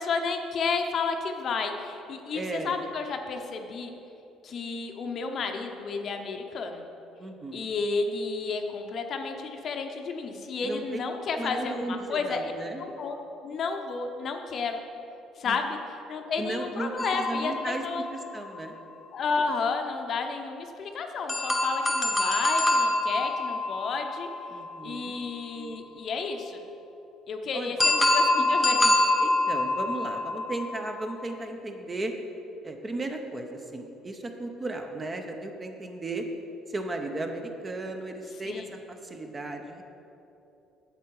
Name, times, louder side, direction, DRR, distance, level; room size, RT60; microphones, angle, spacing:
voice 1, 0.0-3.9 4.4-6.9 7.5-12.5 12.8-13.2 13.4-14.8 15.4-18.0 19.1-24.3 24.8-26.6 27.3-28.9 38.4-38.7, left 4 dB, 45° left, 5 dB, 0.7 m, -32 dB
voice 2, 2.3-2.8 7.2-7.7 10.6-10.8 11.3-12.8 15.4-15.6 16.4-17.8 18.3-18.7 24.5-25.1 27.5-27.8 29.2-32.1 32.6-36.3 36.7-39.8, right 2 dB, 25° right, 4 dB, 0.7 m, -35 dB
sound 1, 17.0-18.7 21.3-25.2 27.8-31.3, left 2 dB, 10° left, 0.9 m, -26 dB
8.2 x 7.3 x 4.7 m, 2.8 s
cardioid pair, 125°, 0 cm